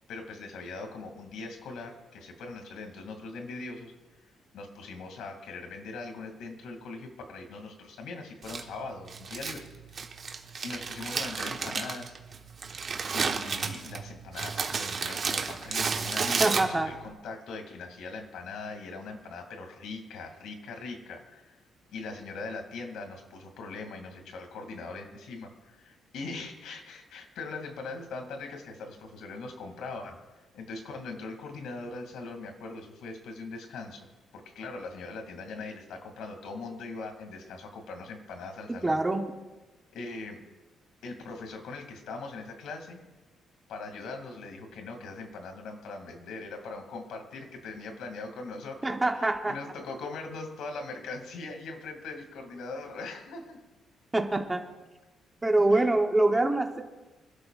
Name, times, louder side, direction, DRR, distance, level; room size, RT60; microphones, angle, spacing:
voice 1, 0.1-3.9 4.2-9.6 10.6-12.1 13.1-21.6 21.9-30.2 30.5-34.1 34.3-39.0 39.9-40.4 41.0-43.0 43.7-53.6 55.7-55.9, left 3 dB, 75° left, 4 dB, 2.4 m, -41 dB
Crumpling crinkling, 8.4-17.1, right 5 dB, 35° right, 1.2 m, -32 dB
voice 2, 16.4-16.9 38.8-39.2 48.8-49.6 54.1-54.6 55.4-56.8, right 2 dB, 10° right, 4 dB, 0.9 m, -24 dB
25.5 x 12.5 x 2.5 m, 1.1 s
cardioid pair, 165°, 0 cm